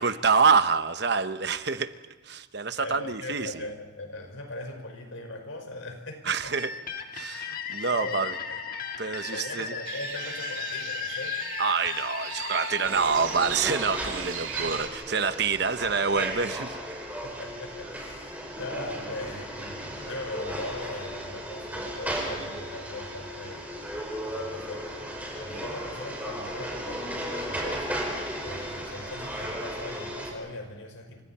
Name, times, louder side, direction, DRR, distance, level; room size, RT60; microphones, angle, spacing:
voice 1, 0.0-1.9 2.2-3.6 6.2-6.7 7.1-8.3 9.0-9.7 11.6-16.8, right 5 dB, 55° right, 10 dB, 1.0 m, -26 dB
voice 2, 2.8-6.6 7.5-7.6 7.9-8.6 9.3-11.4 14.4-14.8 17.2-31.2, left 2 dB, 85° left, 4 dB, 5.4 m, -40 dB
sound 1, 6.6-14.2, left 7 dB, 45° left, 1.7 m, -36 dB
sound 2, 9.8-14.9, right 9 dB, 75° right, 2.2 m, -38 dB
sound 3, 12.8-30.3, equal, 10° right, 5.0 m, -35 dB
29.0 x 26.0 x 4.3 m, 1.2 s
head